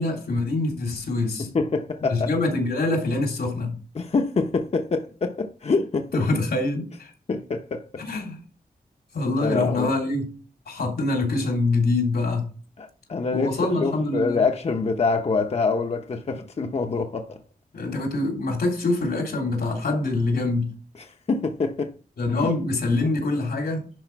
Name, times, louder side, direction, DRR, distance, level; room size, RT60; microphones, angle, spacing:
voice 1, 0.0-1.5 2.1-3.8 6.1-7.1 8.0-8.4 9.1-10.3 10.7-12.5 13.3-14.4 17.7-20.7 22.2-23.9, left 2 dB, 90° left, 3.1 m, -25 dB
voice 2, 1.4-2.3 3.9-6.1 7.3-8.0 9.4-9.9 12.8-17.4 21.0-21.9, left 4 dB, 45° left, 0.7 m, -25 dB
11.0 x 4.9 x 4.5 m
wide cardioid pair, 170°, 16 cm